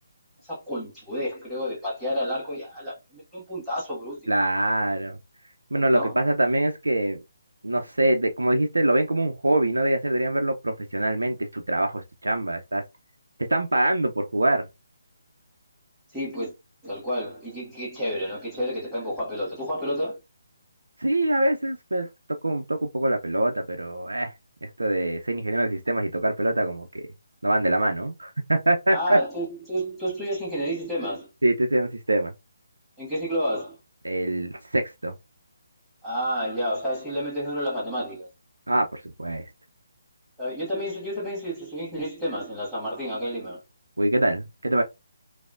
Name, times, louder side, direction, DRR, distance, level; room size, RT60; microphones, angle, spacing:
voice 1, 0.5-4.2 5.9-6.1 16.1-16.5 16.8-20.2 28.9-31.3 33.0-33.8 36.0-38.3 40.4-43.6, equal, ahead, 1.6 m, -30 dB
voice 2, 4.3-5.2 5.7-7.2 7.6-12.8 13.5-14.7 21.0-22.1 22.4-24.3 24.6-27.1 27.4-29.2 31.4-32.3 34.0-35.1 38.7-39.4 44.0-44.8, right 1 dB, 75° right, 0.5 m, -24 dB
4.8 x 2.0 x 2.4 m
figure-of-eight pair, 145°, 0 cm